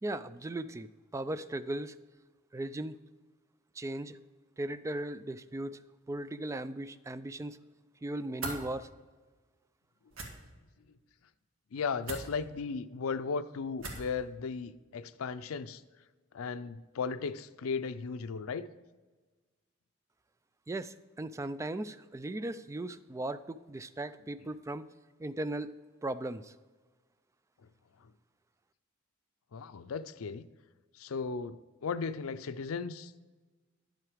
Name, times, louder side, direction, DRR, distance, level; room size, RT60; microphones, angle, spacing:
voice 1, 0.0-2.0 2.5-3.0 3.8-4.2 4.6-5.8 6.1-7.6 8.0-8.9 20.7-24.9 25.2-25.7 26.0-26.5, right 1 dB, 15° right, 13 dB, 0.3 m, -37 dB
sound 1, 8.4-8.6 10.1-10.3 12.0-12.3 13.8-14.1, right 2 dB, 70° right, 1.8 m, -38 dB
voice 2, 11.7-15.8 16.3-18.7 29.5-30.5 31.0-31.6 31.8-33.1, left 5 dB, 90° left, 12 dB, 0.5 m, -36 dB
10.5 x 7.7 x 4.9 m, 1.3 s
head